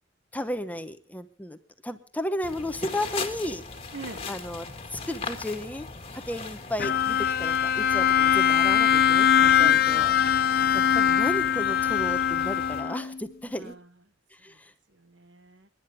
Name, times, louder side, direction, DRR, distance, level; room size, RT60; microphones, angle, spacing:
voice 1, 0.3-1.6 1.8-3.6 4.3-4.7 4.9-5.9 6.1-10.1 10.7-13.8 14.4-14.7, left 1 dB, 10° left, 9 dB, 1.0 m, -34 dB
sound 1, 2.4-12.8, left 4 dB, 30° left, 1.9 m, -40 dB
voice 2, 3.9-4.3 9.6-10.2 13.5-13.9 14.5-14.6 14.9-15.7, right 3 dB, 70° right, 11 dB, 1.3 m, -41 dB
Bowed string instrument, 6.8-13.2, left 9 dB, 55° left, 0.7 m, -22 dB
29.0 x 11.0 x 3.6 m, 0.38 s
head